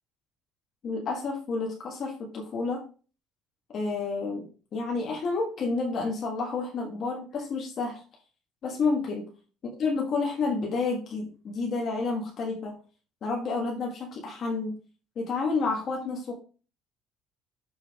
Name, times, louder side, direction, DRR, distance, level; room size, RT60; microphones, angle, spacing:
voice 1, 0.8-2.8 3.7-8.0 8.6-9.3 9.8-12.8 13.2-14.8 15.2-16.3, left 4 dB, 40° left, 0 dB, 1.6 m, -30 dB
7.0 x 6.0 x 3.6 m, 0.37 s
cardioid pair, 145°, 0 cm